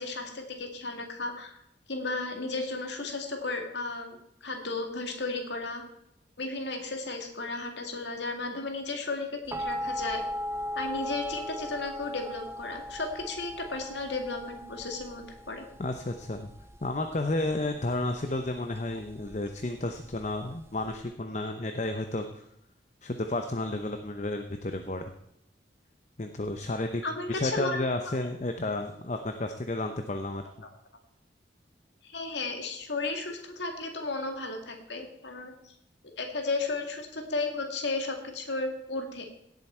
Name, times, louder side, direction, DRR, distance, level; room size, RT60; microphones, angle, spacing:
voice 1, 0.0-1.6 1.9-5.8 6.4-10.2 10.7-15.6 27.0-27.8 32.0-35.7 36.2-39.3, left 3 dB, 70° left, 4 dB, 2.1 m, -34 dB
sound 1, 9.5-21.0, equal, 15° right, 0.5 m, -38 dB
voice 2, 15.8-16.5 16.8-22.3 23.0-25.0 26.2-27.0 27.3-30.4, left 2 dB, 40° left, 6 dB, 0.8 m, -32 dB
17.5 x 7.9 x 4.5 m, 0.78 s
head